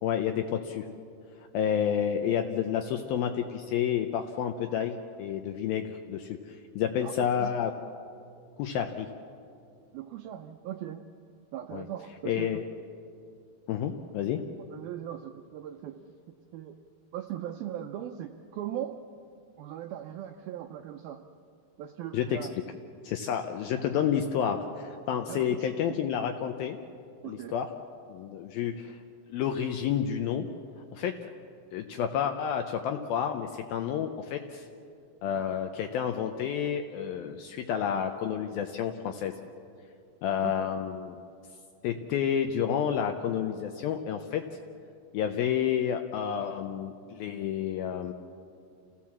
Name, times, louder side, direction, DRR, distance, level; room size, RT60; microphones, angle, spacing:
voice 1, 0.0-0.9 1.5-7.7 8.6-9.1 11.7-11.8 12.3-12.6 13.7-14.4 22.1-22.4 23.0-26.8 27.3-27.7 28.1-29.0 29.3-30.5 30.9-31.1 31.7-34.7 35.2-39.3 40.2-41.2 41.8-44.4 45.1-48.1, left 8 dB, 80° left, 6 dB, 2.2 m, -30 dB
voice 2, 7.0-7.5 9.9-11.0 11.5-12.6 14.7-16.0 16.5-16.8 17.1-19.0 19.6-21.2 21.8-22.5 25.3-25.7 27.2-27.6 40.4-40.7, right 11 dB, 80° right, 5 dB, 2.1 m, -39 dB
28.5 x 16.5 x 7.4 m, 2.5 s
omnidirectional pair, 5.1 m